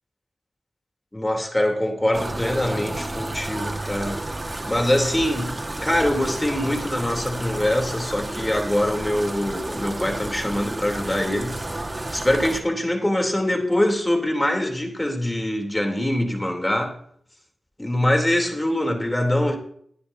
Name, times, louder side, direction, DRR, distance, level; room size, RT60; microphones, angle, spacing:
voice 1, 1.1-4.2 4.7-5.5 5.8-11.6 12.1-16.9 17.8-19.6, left 1 dB, 15° left, 1 dB, 3.2 m, -23 dB
sound 1, 2.1-12.6, right 2 dB, 25° right, 1.6 m, -31 dB
22.0 x 10.0 x 2.7 m, 0.62 s
wide cardioid pair, 80°, 0 cm